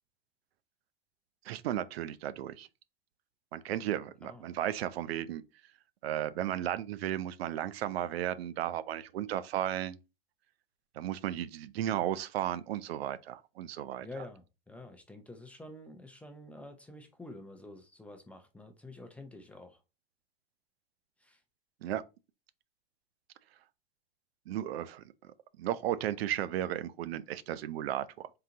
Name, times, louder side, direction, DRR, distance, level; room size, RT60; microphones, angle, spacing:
voice 1, 1.4-2.7 3.5-5.4 6.0-10.0 10.9-14.1 21.8-22.0 24.5-25.0 25.6-28.3, right 11 dB, 90° right, 0.5 m, -34 dB
voice 2, 14.0-19.8 21.2-21.4, left 2 dB, 5° left, 0.4 m, -48 dB
3.8 x 2.7 x 3.8 m
supercardioid pair, 135°, 30 cm